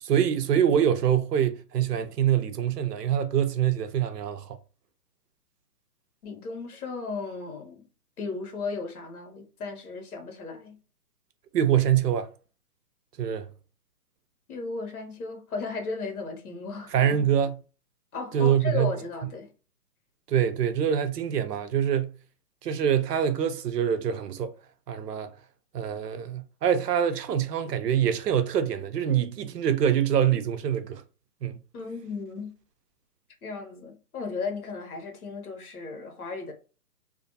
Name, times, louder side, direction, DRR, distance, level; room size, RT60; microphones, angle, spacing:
voice 1, 0.0-4.6 11.5-12.3 13.2-13.5 16.9-17.6 18.3-18.9 20.3-22.2 22.6-24.5 24.9-25.3 25.7-31.0 31.4-31.6, right 9 dB, 80° right, 0.6 m, -25 dB
voice 2, 6.2-7.9 8.2-10.8 14.5-17.1 18.1-19.5 31.7-32.5 33.4-36.5, left 4 dB, 65° left, 1.1 m, -35 dB
2.5 x 2.2 x 2.6 m
hypercardioid pair, 170°, 47 cm